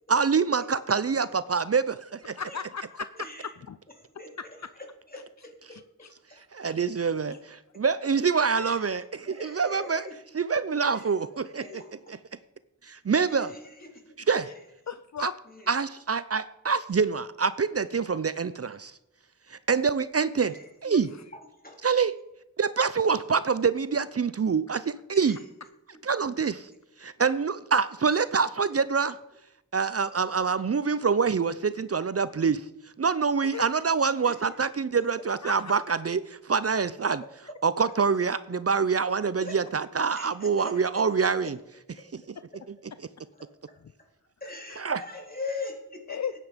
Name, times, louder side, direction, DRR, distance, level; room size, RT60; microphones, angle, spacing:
voice 1, 0.1-2.4 5.6-5.7 6.5-10.1 10.3-11.8 12.1-12.2 12.8-13.5 14.3-14.5 15.2-15.3 15.7-19.0 19.5-20.6 20.8-21.1 21.8-22.2 22.6-25.4 26.0-26.7 27.0-29.2 29.7-32.7 33.0-37.2 37.6-41.6 42.1-42.2 44.8-45.0, right 5 dB, 50° right, 15 dB, 0.6 m, -26 dB
voice 2, 2.4-3.8 4.6-4.7 5.4-6.1 6.7-6.8 14.9-15.3 20.9-21.2 33.5-33.6 35.4-35.5 43.8-43.9 44.7-44.9 46.1-46.3, left 7 dB, 60° left, 13 dB, 0.5 m, -37 dB
voice 3, 5.1-5.8 8.6-8.7 9.3-10.2 11.4-11.9 13.3-13.6 13.9-14.0 20.5-20.9 21.6-21.8 34.2-34.4 39.4-39.6 40.1-40.8 42.0-42.1 44.4-46.2, left 3 dB, 30° left, 2 dB, 3.2 m, -40 dB
14.0 x 9.3 x 5.1 m, 0.88 s
wide cardioid pair, 60°, 32 cm